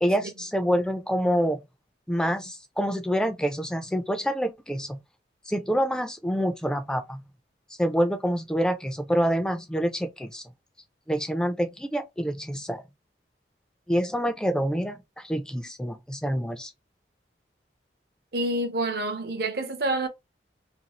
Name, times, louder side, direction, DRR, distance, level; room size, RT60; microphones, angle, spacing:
voice 1, 0.0-1.6 2.1-5.0 5.5-7.2 7.8-10.4 11.1-12.8 13.9-16.7, equal, 5° left, 0.3 m, -27 dB
voice 2, 18.3-20.1, right 2 dB, 60° right, 0.6 m, -27 dB
2.6 x 2.3 x 2.9 m
head